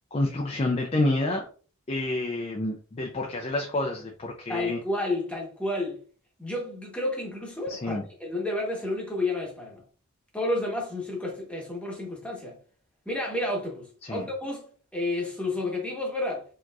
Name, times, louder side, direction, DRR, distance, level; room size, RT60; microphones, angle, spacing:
voice 1, 0.1-1.5 1.9-4.8 7.7-8.0 14.0-14.2, left 2 dB, 30° left, 0.4 m, -28 dB
voice 2, 4.5-6.0 6.4-9.8 10.3-12.6 13.0-16.4, left 2 dB, 5° left, 1.0 m, -31 dB
4.5 x 2.9 x 2.4 m
head